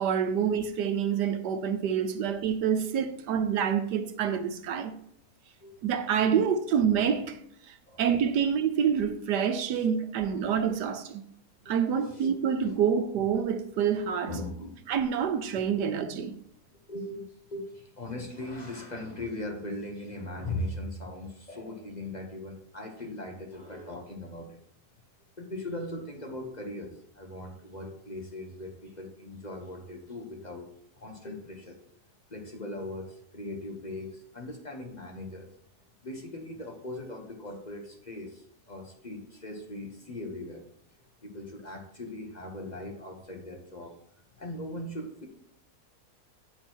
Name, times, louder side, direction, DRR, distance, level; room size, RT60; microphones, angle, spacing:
voice 1, 0.0-4.9 5.8-7.4 7.7-11.2 11.7-14.4 14.9-16.3, right 7 dB, 85° right, 1.4 m, -27 dB
voice 2, 11.6-12.4 14.3-14.7 15.7-15.9 16.9-24.6 25.4-30.7 31.0-31.8 32.3-35.5 36.0-40.6 41.2-43.9 44.4-45.3, left 1 dB, 30° left, 1.1 m, -39 dB
9.5 x 4.5 x 4.4 m
omnidirectional pair, 1.7 m